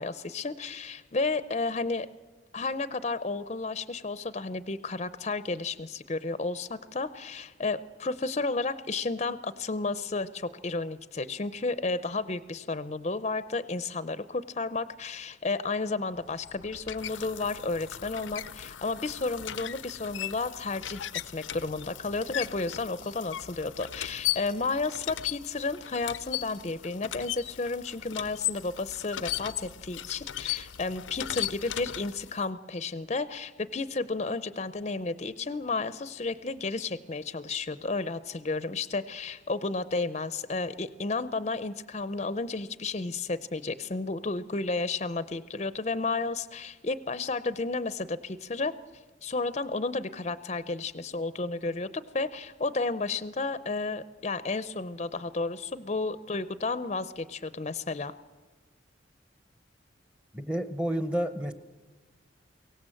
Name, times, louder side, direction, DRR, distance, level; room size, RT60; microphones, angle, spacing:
voice 1, 0.0-2.1 2.5-48.7 49.2-58.1, left 3 dB, 35° left, 14 dB, 0.6 m, -32 dB
sound 1, 16.2-32.4, left 13 dB, 90° left, 0.6 m, -37 dB
voice 2, 60.3-61.5, right 1 dB, 5° right, 10 dB, 0.8 m, -30 dB
23.0 x 17.5 x 7.7 m, 1.3 s
head